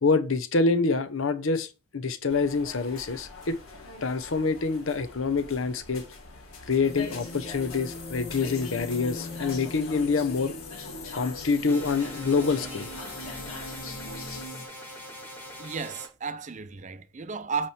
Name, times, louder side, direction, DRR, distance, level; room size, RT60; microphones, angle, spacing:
voice 1, 0.0-3.6 4.0-6.0 6.7-10.5 11.1-12.9, left 4 dB, 70° left, 0.7 m, -26 dB
In the tube platform, 2.3-14.5, left 2 dB, 85° left, 1.6 m, -43 dB
sound 1, 6.8-14.7, left 3 dB, 45° left, 1.0 m, -41 dB
sound 2, 11.7-16.1, equal, 10° left, 1.5 m, -43 dB
voice 2, 15.6-17.7, right 5 dB, 35° right, 0.5 m, -33 dB
8.9 x 3.2 x 4.3 m
head